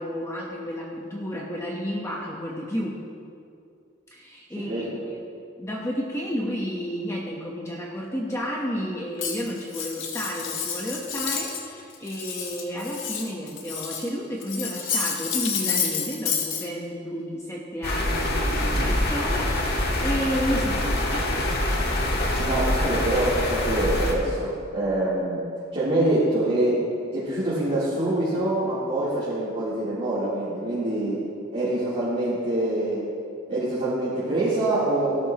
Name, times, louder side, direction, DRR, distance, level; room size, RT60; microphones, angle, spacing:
voice 1, 0.0-2.9 4.1-5.2 5.6-21.2, equal, 15° left, -2 dB, 1.0 m, -31 dB
voice 2, 4.5-4.9 22.4-31.2 31.5-33.0 33.5-35.3, right 1 dB, 35° right, -12 dB, 3.3 m, -25 dB
Cutlery silverware, 9.2-11.7 11.9-14.1 14.4-16.6, left 7 dB, 85° left, 1.4 m, -29 dB
sound 1, 17.8-24.1, left 1 dB, 55° left, 1.6 m, -25 dB
17.0 x 12.0 x 3.0 m, 2.4 s
head